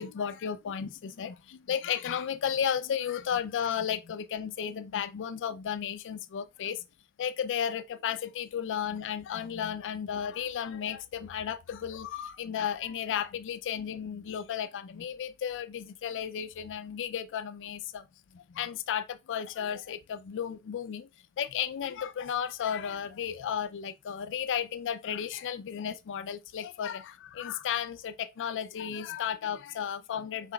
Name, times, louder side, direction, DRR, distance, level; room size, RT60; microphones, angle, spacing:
voice 1, 0.0-6.8 7.2-18.1 18.3-21.1 21.4-30.5, left 8 dB, 55° left, 0.4 m, -34 dB
5.7 x 4.1 x 2.2 m
head